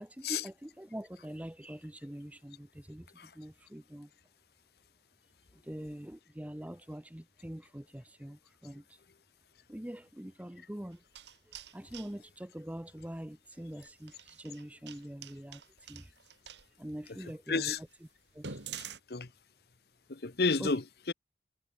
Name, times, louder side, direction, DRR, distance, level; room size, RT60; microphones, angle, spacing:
voice 1, 0.0-3.1 3.4-4.1 5.6-9.0 9.7-11.0 11.7-15.6 15.9-16.1 16.8-17.8 18.3-18.6 20.6-20.7, equal, 10° right, 0.6 m, -44 dB
sound 1, 10.9-12.1 13.7-16.6 17.2-17.3 17.8-17.9 18.3-19.0, right 6 dB, 80° right, 4.0 m, -46 dB
voice 2, 17.2-17.8 19.1-19.3 20.1-21.1, left 4 dB, 60° left, 1.0 m, -31 dB
head